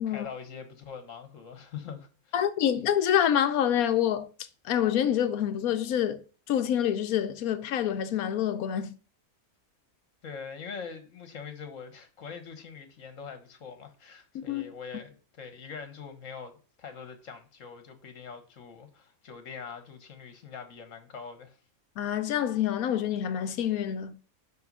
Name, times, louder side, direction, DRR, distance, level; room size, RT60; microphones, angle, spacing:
voice 1, 0.0-2.4 10.2-21.6, left 6 dB, 65° left, 1.6 m, -43 dB
voice 2, 2.3-4.3 4.6-9.0 14.3-14.6 22.0-24.1, left 10 dB, 80° left, 1.1 m, -27 dB
5.7 x 5.6 x 5.4 m
omnidirectional pair, 1.5 m